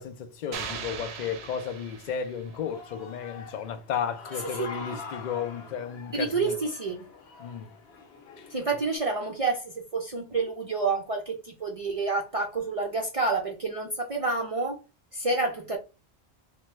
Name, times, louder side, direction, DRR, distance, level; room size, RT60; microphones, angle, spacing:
voice 1, 0.0-6.5 7.4-7.7 8.4-8.5, left 7 dB, 55° left, 0.5 m, -34 dB
sound 1, 0.5-2.7, right 6 dB, 85° right, 0.8 m, -39 dB
Human voice / Cheering, 2.4-9.0, left 4 dB, 80° left, 0.9 m, -45 dB
voice 2, 6.1-7.1 8.5-14.8 15.1-15.8, right 3 dB, 50° right, 0.4 m, -29 dB
3.3 x 2.2 x 3.0 m
omnidirectional pair, 1.1 m